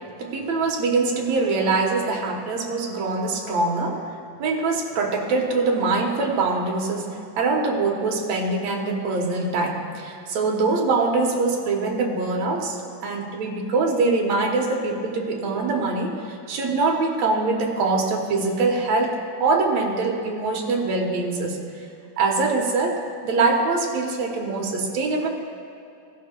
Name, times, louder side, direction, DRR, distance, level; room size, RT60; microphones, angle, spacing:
voice 1, 0.2-4.1 4.4-12.8 13.0-21.6 22.2-25.3, right 3 dB, 70° right, 1 dB, 2.2 m, -23 dB
16.0 x 12.0 x 2.2 m, 2.7 s
omnidirectional pair, 3.4 m